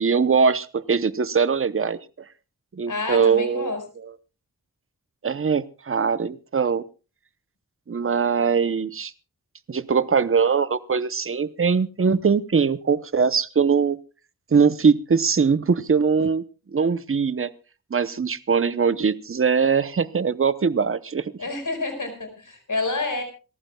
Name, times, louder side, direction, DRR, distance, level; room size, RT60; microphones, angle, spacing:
voice 1, 0.0-2.0 2.7-3.7 5.2-6.8 7.9-9.1 9.7-14.0 14.5-16.4 16.7-17.5 17.9-21.3, right 5 dB, 40° right, 16 dB, 0.7 m, -21 dB
voice 2, 2.9-3.8 21.4-23.2, left 3 dB, 60° left, 6 dB, 4.9 m, -28 dB
27.0 x 14.5 x 2.3 m, 0.33 s
wide cardioid pair, 85°, 35 cm